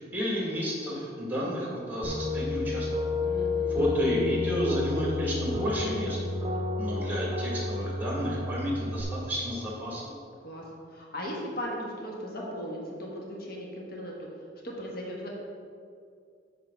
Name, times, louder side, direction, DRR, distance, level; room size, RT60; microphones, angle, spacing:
voice 1, 0.0-2.9 3.7-6.2 6.8-10.1, equal, 10° right, -4 dB, 1.8 m, -31 dB
sound 1, 2.0-9.0, left 2 dB, 25° right, 0.7 m, -30 dB
voice 2, 3.2-4.0 10.4-15.3, equal, 55° left, -3 dB, 1.4 m, -38 dB
8.2 x 3.9 x 6.0 m, 2.3 s
head